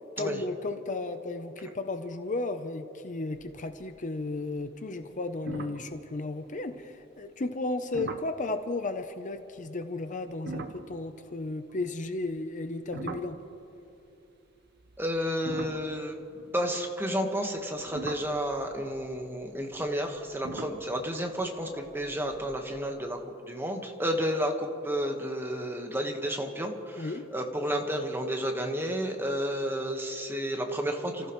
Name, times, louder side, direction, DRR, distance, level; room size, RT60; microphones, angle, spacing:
voice 1, 0.2-13.4 27.0-27.3, left 2 dB, 40° left, 8 dB, 0.6 m, -34 dB
sound 1, 3.3-4.0 4.3-4.7 5.0-5.1 5.5-6.8 7.9-8.4 10.3-13.9 14.7-16.9 17.5-22.9, right 3 dB, 50° right, 0.8 m, -43 dB
voice 2, 15.0-23.2 23.5-31.3, equal, 10° right, 3 dB, 1.3 m, -31 dB
30.0 x 15.0 x 3.1 m, 2.9 s
head